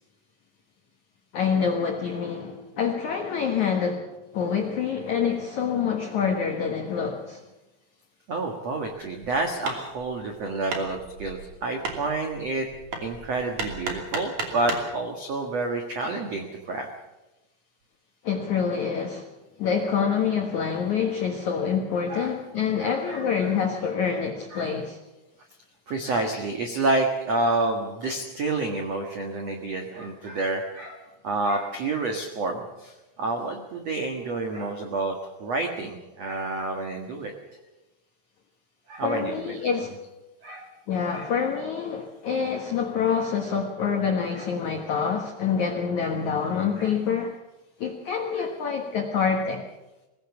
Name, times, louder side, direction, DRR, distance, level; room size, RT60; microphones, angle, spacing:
voice 1, 1.3-7.4 18.2-19.3 19.6-25.0 39.0-40.0 40.9-47.3 47.8-49.6, left 6 dB, 90° left, 3 dB, 1.6 m, -26 dB
voice 2, 8.3-12.7 13.0-16.9 22.1-22.3 22.8-23.5 24.5-24.7 25.9-37.3 38.9-39.5 40.4-40.7 41.1-41.3 44.3-44.5 46.8-46.9 48.4-48.5, right 2 dB, 80° right, 3 dB, 1.4 m, -29 dB
Hammer, 9.2-14.9, right 3 dB, 40° right, 3.4 m, -35 dB
21.5 x 17.5 x 7.1 m, 1.0 s
omnidirectional pair, 5.8 m